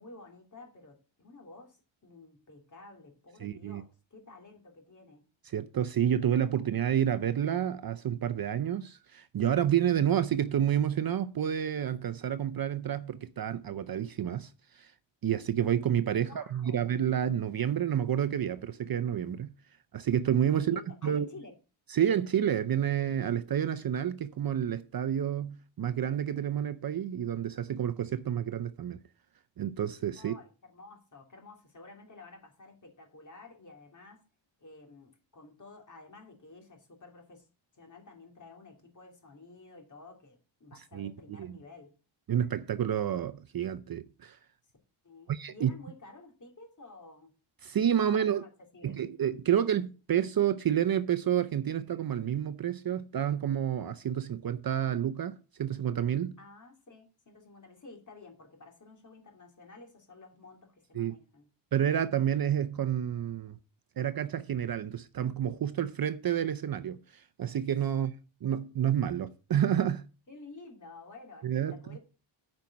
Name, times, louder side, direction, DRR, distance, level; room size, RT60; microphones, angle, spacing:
voice 1, 0.0-5.3 16.1-16.8 20.6-21.5 30.2-34.2 34.6-37.5 37.7-41.9 45.0-47.3 48.0-49.0 56.4-61.5 70.3-72.0, left 3 dB, 35° left, 2.9 m, -51 dB
voice 2, 3.4-3.8 5.5-14.5 14.8-14.9 15.2-19.5 19.9-21.3 21.9-29.0 29.6-30.3 40.9-41.1 41.4-41.6 42.3-44.4 45.3-45.7 47.6-48.4 48.8-56.4 60.9-61.1 61.7-63.6 64.0-68.1 68.4-70.1 71.4-72.0, right 9 dB, 45° right, 0.6 m, -29 dB
8.9 x 5.4 x 7.2 m
wide cardioid pair, 135°, 49 cm